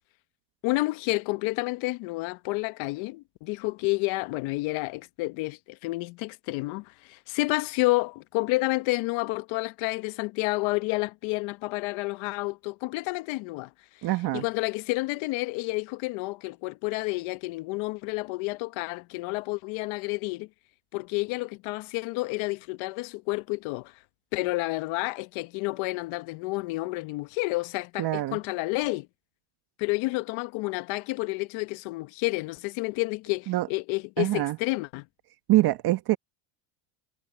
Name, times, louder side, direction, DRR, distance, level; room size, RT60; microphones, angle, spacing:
voice 1, 0.6-13.7 14.3-20.5 20.9-23.9 24.3-29.1 29.8-35.1, left 23 dB, 70° left, 1.3 m, -30 dB
voice 2, 14.0-14.4 28.0-28.4 33.5-33.7 34.2-34.6 35.5-36.2, right 16 dB, 50° right, 1.2 m, -24 dB
supercardioid pair, 100°, 49 cm